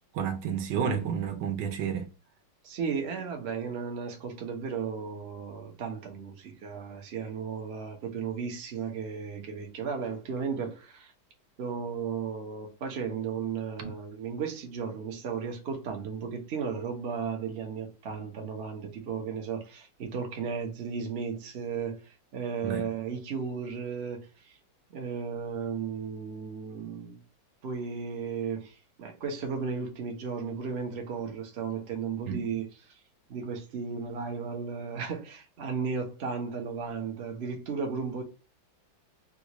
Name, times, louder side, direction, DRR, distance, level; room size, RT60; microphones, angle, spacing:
voice 1, 0.1-2.1 13.8-13.9 22.6-22.8 32.3-32.4, right 7 dB, 80° right, 1.4 m, -30 dB
voice 2, 2.6-11.1 11.6-24.6 24.9-27.2 27.6-32.9 33.3-38.2, right 6 dB, 50° right, 0.8 m, -35 dB
3.7 x 2.4 x 2.9 m
omnidirectional pair, 2.0 m